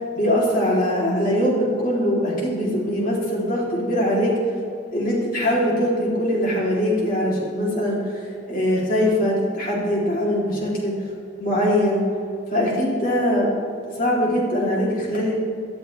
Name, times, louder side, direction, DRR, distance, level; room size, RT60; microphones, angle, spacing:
voice 1, 0.1-4.3 4.9-10.9 11.4-12.0 12.5-13.5 14.0-15.4, equal, 45° left, -4 dB, 3.4 m, -22 dB
17.0 x 13.0 x 3.5 m, 2.3 s
head